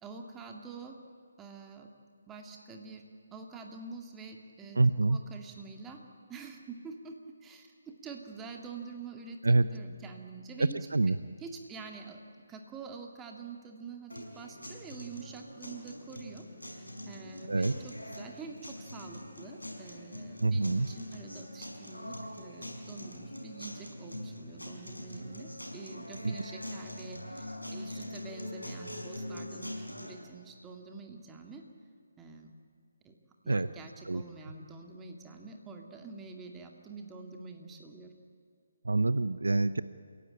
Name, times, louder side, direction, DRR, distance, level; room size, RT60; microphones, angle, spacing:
voice 1, 0.0-1.0 1.4-1.9 2.3-3.0 3.3-4.8 5.1-6.0 6.3-10.9 11.4-12.2 12.5-31.7 32.2-32.5 33.0-33.2 33.4-38.1, right 4 dB, 10° right, 3 dB, 2.1 m, -46 dB
voice 2, 4.8-5.2 9.4-9.6 10.6-11.1 17.5-17.7 20.4-20.9 26.2-26.3 33.5-33.7 34.1-34.2 38.8-39.8, right 2 dB, 70° right, 15 dB, 0.8 m, -26 dB
sound 1, 14.1-30.1, left 1 dB, 85° left, 5.4 m, -43 dB
28.5 x 16.5 x 8.8 m, 2.3 s
figure-of-eight pair, 145°, 0 cm